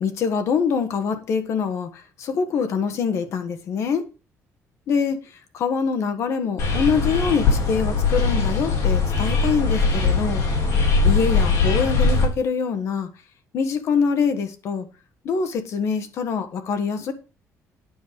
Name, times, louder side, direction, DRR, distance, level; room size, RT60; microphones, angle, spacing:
voice 1, 0.0-1.9 2.2-4.0 4.9-5.2 5.5-10.4 11.0-13.1 13.5-14.8 15.2-17.1, left 6 dB, 55° left, 1.4 m, -24 dB
sound 1, 6.6-12.3, left 4 dB, 75° left, 3.8 m, -20 dB
9.5 x 5.5 x 6.5 m
cardioid pair, 170°, 6 cm